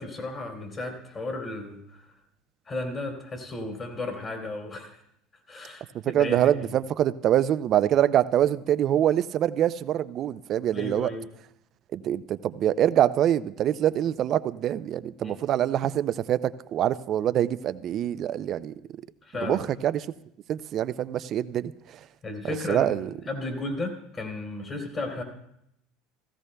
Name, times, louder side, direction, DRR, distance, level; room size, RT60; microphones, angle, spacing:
voice 1, 0.0-2.1 2.7-5.0 5.5-6.8 10.7-11.3 15.2-15.4 19.2-19.6 22.2-22.9 23.3-25.2, left 2 dB, 35° left, 1 dB, 2.9 m, -34 dB
voice 2, 6.1-11.1 11.9-18.7 19.4-20.1 20.5-21.7 22.4-23.1, right 11 dB, 50° right, 15 dB, 0.4 m, -25 dB
16.5 x 15.0 x 2.2 m, 0.76 s
supercardioid pair, 100°, 0 cm